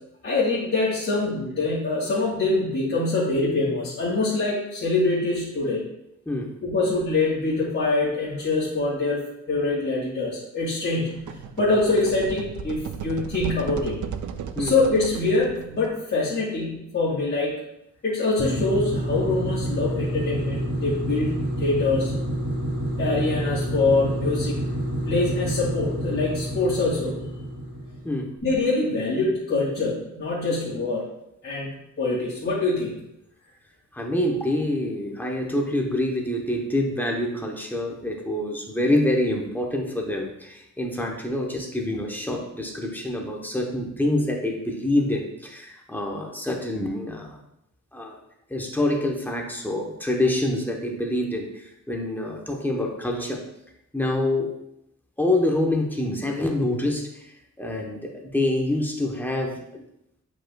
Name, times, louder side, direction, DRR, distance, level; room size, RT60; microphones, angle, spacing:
voice 1, 0.2-5.8 6.6-11.2 11.6-14.0 14.6-17.5 18.0-22.1 23.0-24.6 25.1-27.2 28.4-31.1 31.4-31.7 32.0-32.9, left 3 dB, 45° left, -9 dB, 2.0 m, -24 dB
sound 1, 11.1-16.0, right 7 dB, 80° right, 0.5 m, -35 dB
sound 2, 18.4-28.2, right 1 dB, 40° right, 1.3 m, -28 dB
voice 2, 33.9-47.4 47.9-48.2 48.5-53.4 53.9-54.5 55.2-57.3 57.6-59.8, left 1 dB, 5° left, 0 dB, 0.8 m, -26 dB
8.5 x 5.2 x 2.3 m, 0.81 s
wide cardioid pair, 160°, 30 cm